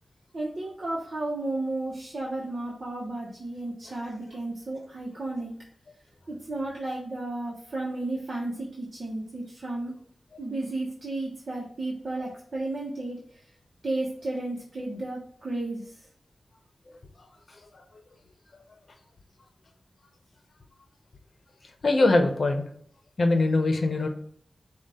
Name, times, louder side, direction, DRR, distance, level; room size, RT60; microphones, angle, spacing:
voice 1, 0.3-5.5 6.3-9.9 10.4-13.2 13.8-15.9, right 2 dB, 50° right, -4 dB, 1.0 m, -33 dB
voice 2, 21.8-22.6 23.2-24.1, left 2 dB, 60° left, 5 dB, 0.8 m, -22 dB
5.5 x 2.4 x 3.6 m, 0.65 s
wide cardioid pair, 95°, 0 cm